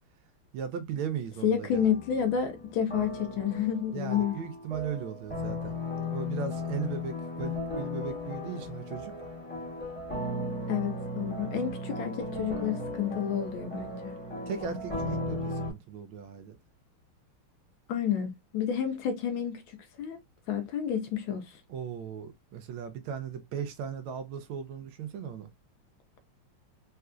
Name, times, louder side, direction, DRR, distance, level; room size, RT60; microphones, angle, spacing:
voice 1, 0.5-1.8 3.9-5.7 6.1-9.1 14.5-16.5 21.7-25.5, right 7 dB, 75° right, 1.3 m, -37 dB
voice 2, 1.4-4.4 10.7-14.1 17.9-19.6 20.0-20.2 20.5-21.6, left 8 dB, 75° left, 1.3 m, -30 dB
sound 1, 1.7-15.7, left 2 dB, 5° left, 0.9 m, -36 dB
4.2 x 2.4 x 2.3 m
omnidirectional pair, 2.4 m